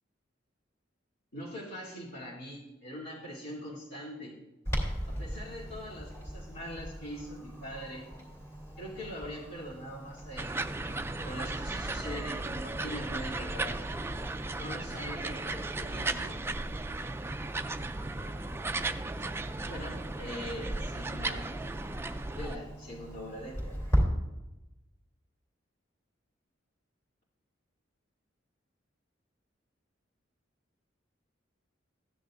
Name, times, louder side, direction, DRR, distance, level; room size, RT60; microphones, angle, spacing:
voice 1, 1.3-4.4 5.1-8.1 8.8-10.9 11.2-13.8 14.5-16.4 19.6-21.5 22.3-23.8, equal, 60° left, -7 dB, 3.0 m, -42 dB
Clock, 4.6-24.0, equal, 15° left, 3.1 m, -39 dB
sound 1, 10.4-22.6, right 2 dB, 15° right, 0.4 m, -35 dB
15.0 x 10.0 x 2.6 m, 1.0 s
head